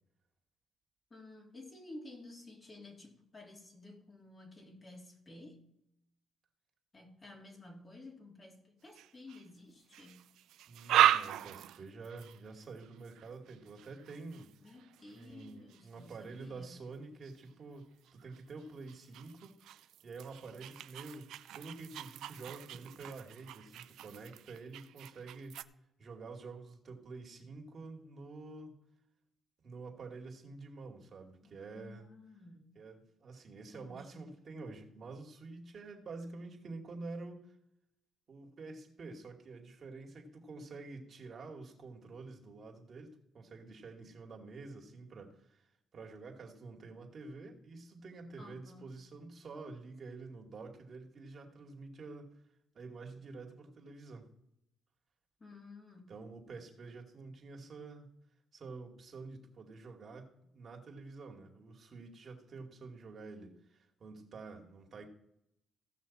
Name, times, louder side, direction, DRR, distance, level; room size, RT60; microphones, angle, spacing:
voice 1, 1.1-5.7 6.9-10.2 14.6-16.8 31.4-32.7 33.7-34.3 48.4-48.9 55.4-56.1, left 2 dB, 30° left, 3.0 m, -53 dB
sound 1, 8.9-9.5 9.9-16.5 17.2-17.5 18.0-25.6, right 12 dB, 85° right, 0.4 m, -36 dB
voice 2, 10.7-14.5 15.1-19.6 20.0-21.3 21.5-25.6 26.0-28.8 29.6-32.1 32.8-37.4 38.3-45.6 45.9-52.4 52.7-54.3 56.1-58.1 58.5-65.1, right 3 dB, 45° right, 2.4 m, -48 dB
16.5 x 6.2 x 4.2 m
cardioid pair, 90°, 0 cm